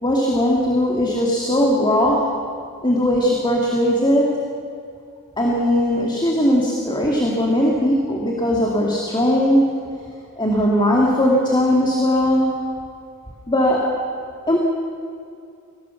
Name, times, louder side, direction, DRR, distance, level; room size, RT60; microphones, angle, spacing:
voice 1, 0.0-2.2 2.8-4.3 5.4-9.7 10.4-12.5 13.5-13.8 14.5-14.6, equal, 20° left, -2 dB, 2.5 m, -18 dB
23.5 x 18.5 x 7.1 m, 2.4 s
head